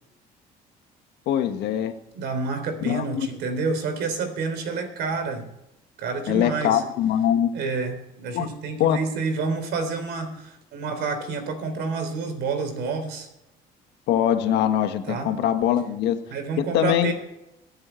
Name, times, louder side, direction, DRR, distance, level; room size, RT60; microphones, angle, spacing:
voice 1, 1.3-1.9 2.8-3.3 6.3-7.5 8.3-8.5 8.8-9.0 14.1-16.2 16.6-17.1, left 10 dB, 85° left, 8 dB, 1.4 m, -22 dB
voice 2, 2.1-5.5 6.0-6.8 7.5-13.3 15.1-15.3 16.3-17.1, right 4 dB, 80° right, 7 dB, 3.6 m, -29 dB
23.0 x 7.7 x 4.5 m, 0.89 s
cardioid pair, 110°, 17 cm